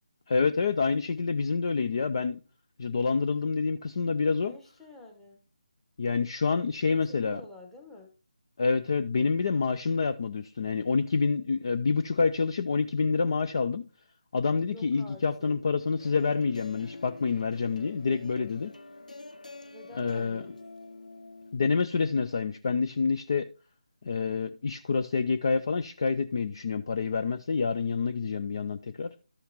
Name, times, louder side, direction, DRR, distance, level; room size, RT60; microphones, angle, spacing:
voice 1, 0.3-2.4 2.8-4.5 6.0-7.4 8.6-13.8 14.3-18.7 20.0-20.4 21.5-23.5 24.0-29.1, left 4 dB, 35° left, 0.4 m, -27 dB
voice 2, 4.4-5.4 6.6-8.1 14.7-15.6 19.7-20.6, left 2 dB, ahead, 1.0 m, -49 dB
sound 1, 16.0-21.6, left 2 dB, 65° left, 0.7 m, -46 dB
13.0 x 5.7 x 2.9 m
figure-of-eight pair, 155°, 4 cm